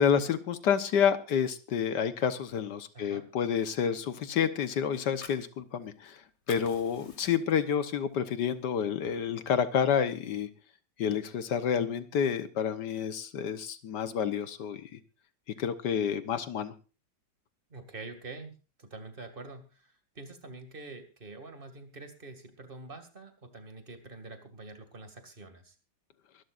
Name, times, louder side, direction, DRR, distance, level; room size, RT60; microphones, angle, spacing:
voice 1, 0.0-6.2 6.5-10.5 11.0-15.0 15.6-16.7, left 7 dB, 70° left, 11 dB, 1.6 m, -29 dB
voice 2, 2.9-3.3 17.7-25.7, right 3 dB, 30° right, 7 dB, 2.4 m, -46 dB
Fire, 5.1-6.1 6.3-7.7 8.1-8.3 8.7-9.6, left 4 dB, 40° left, 2.0 m, -49 dB
24.0 x 12.5 x 2.5 m, 0.32 s
omnidirectional pair, 1.9 m